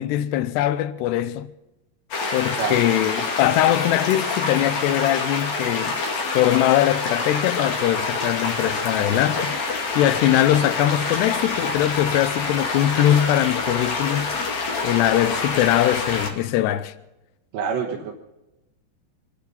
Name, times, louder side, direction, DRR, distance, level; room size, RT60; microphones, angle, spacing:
voice 1, 0.0-1.5 2.3-6.0 6.3-9.6 10.0-14.3 14.8-16.9, left 13 dB, 80° left, 2.8 m, -21 dB
sound 1, 2.1-16.3, left 4 dB, 45° left, 3.2 m, -26 dB
voice 2, 17.5-18.1, right 6 dB, 75° right, 3.6 m, -26 dB
26.5 x 9.6 x 5.6 m
omnidirectional pair, 5.0 m